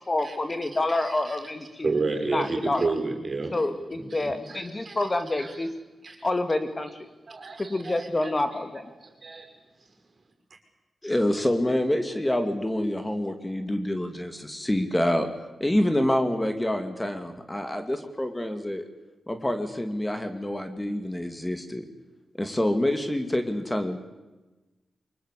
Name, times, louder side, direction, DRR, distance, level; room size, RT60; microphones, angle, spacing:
voice 1, 0.1-1.9 2.3-2.8 3.5-5.7 6.2-6.9 7.7-8.9, left 2 dB, 30° left, 9 dB, 2.4 m, -28 dB
voice 2, 0.7-1.5 1.8-3.7 4.0-5.6 6.0-6.3 7.3-9.5 9.8-9.9, right 3 dB, 50° right, 5 dB, 5.8 m, -32 dB
voice 3, 11.0-15.3 15.6-18.9 19.3-21.9 22.4-24.0, left 1 dB, 15° left, 8 dB, 2.4 m, -27 dB
24.0 x 21.0 x 8.4 m, 1.1 s
cardioid pair, 65°, 0 cm